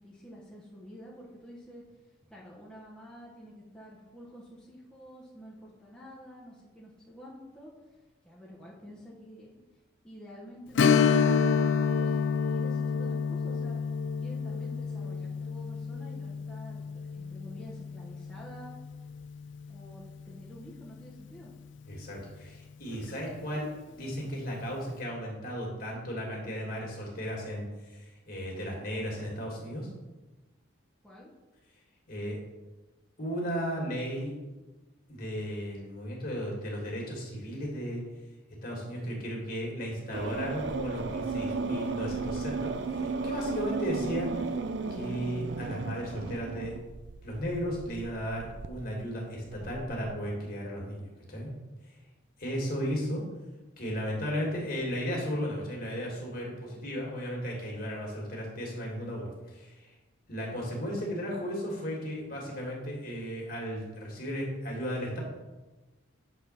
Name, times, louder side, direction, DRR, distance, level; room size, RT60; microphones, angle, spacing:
voice 1, 0.0-1.8 2.3-7.7 8.2-9.6 10.0-12.2 12.5-13.8 14.2-18.8 19.7-21.5 31.0-31.3, equal, 5° left, -7 dB, 0.9 m, -49 dB
Strum, 10.8-20.0 20.3-20.4 22.9-23.1 23.5-23.6, left 6 dB, 65° left, 0.4 m, -29 dB
voice 2, 21.9-29.9 32.1-32.4 33.2-34.3 35.1-38.0 38.6-44.3 44.9-46.7 47.2-51.5 52.4-53.2 53.8-59.9 60.3-65.2, equal, 45° left, -2 dB, 2.1 m, -35 dB
sound 1, 40.1-48.7 49.5-50.1, right 4 dB, 60° right, 0.5 m, -35 dB
7.2 x 4.1 x 5.6 m, 1.2 s
head